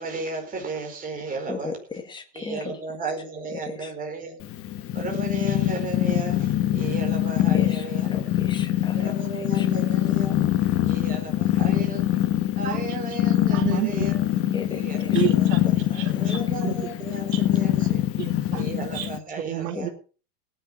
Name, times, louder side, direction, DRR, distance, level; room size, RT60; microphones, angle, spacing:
voice 1, 0.0-1.7 2.3-4.4 4.9-8.2 8.9-10.4 10.8-12.1 12.6-14.2 14.7-15.5 16.1-18.0 18.5-19.9, right 3 dB, 15° right, 2 dB, 4.7 m, -34 dB
voice 2, 1.5-2.8 3.5-3.9 7.5-7.8 8.1-9.1 9.5-9.7 14.5-15.2 15.9-16.4 19.8-19.9, left 5 dB, 10° left, 4 dB, 1.9 m, -36 dB
Purr, 4.4-19.2, left 13 dB, 25° left, 1.4 m, -24 dB
voice 3, 12.6-13.0 13.5-14.6 15.1-16.8 17.2-17.4 17.8-17.9 18.2-19.1 19.4-19.9, right 13 dB, 80° right, 5 dB, 3.7 m, -31 dB
17.5 x 10.5 x 6.1 m, 0.38 s
supercardioid pair, 165°, 49 cm